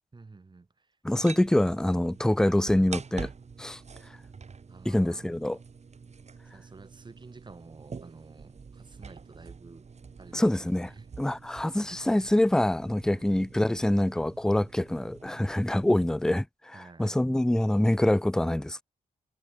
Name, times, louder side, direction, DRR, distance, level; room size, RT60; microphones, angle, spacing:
voice 1, 0.1-1.0 4.7-5.3 6.4-9.9 10.2-11.1 13.1-13.3 16.7-17.2, right 3 dB, 30° right, 2.2 m, -51 dB
voice 2, 1.0-3.3 3.6-3.8 4.9-5.6 10.3-10.9 11.2-18.8, left 1 dB, 5° left, 0.5 m, -25 dB
sound 1, 1.2-16.2, right 5 dB, 50° right, 4.2 m, -46 dB
cardioid pair, 75°, 15 cm